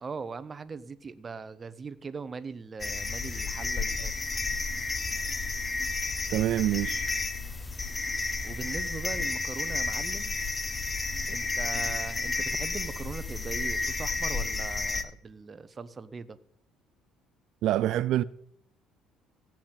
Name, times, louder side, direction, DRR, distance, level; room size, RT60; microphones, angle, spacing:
voice 1, 0.0-4.1 8.4-10.3 11.3-16.4, right 5 dB, 25° right, 0.8 m, -40 dB
sound 1, 2.8-15.0, left 3 dB, 20° left, 0.9 m, -31 dB
voice 2, 6.3-7.1 17.6-18.2, right 13 dB, 70° right, 0.4 m, -26 dB
16.0 x 5.9 x 8.9 m
cardioid pair, 120°, 0 cm